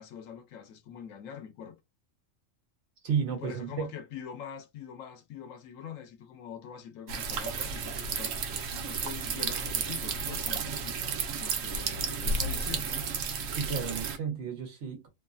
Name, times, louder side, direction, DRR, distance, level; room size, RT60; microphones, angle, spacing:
voice 1, 0.0-1.8 3.3-12.9 14.3-14.4, left 8 dB, 85° left, 1.1 m, -44 dB
voice 2, 3.0-3.9 13.4-15.1, right 7 dB, 65° right, 1.2 m, -32 dB
falling water, 7.1-14.2, right 5 dB, 80° right, 1.0 m, -32 dB
3.0 x 2.3 x 2.4 m
omnidirectional pair, 1.3 m